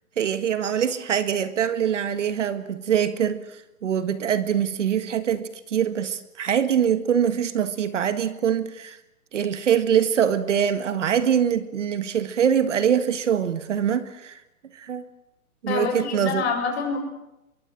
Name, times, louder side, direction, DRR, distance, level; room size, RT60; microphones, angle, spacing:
voice 1, 0.2-9.0 9.3-14.4 14.7-15.0 15.6-16.4, right 8 dB, 50° right, 1.8 m, -24 dB
voice 2, 15.7-17.0, left 5 dB, 45° left, 7.4 m, -26 dB
25.0 x 23.0 x 7.5 m
hypercardioid pair, 165°, 45 cm